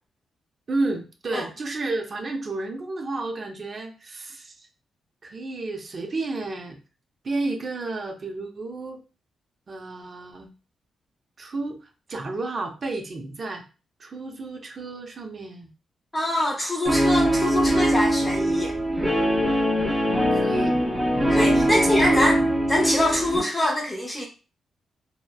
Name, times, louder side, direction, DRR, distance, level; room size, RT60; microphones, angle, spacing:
voice 1, 0.7-4.7 5.2-6.8 7.2-9.0 9.7-10.5 11.4-11.8 12.1-13.6 14.0-15.7 20.3-20.8 21.7-22.5, right 2 dB, 40° right, 3 dB, 0.6 m, -32 dB
voice 2, 16.1-18.8 21.3-22.4 22.7-24.3, left 1 dB, 20° left, 1 dB, 0.5 m, -24 dB
Guitar, 16.9-23.4, equal, 15° right, 1.0 m, -22 dB
2.9 x 2.0 x 2.3 m, 0.33 s
cardioid pair, 115°, 0 cm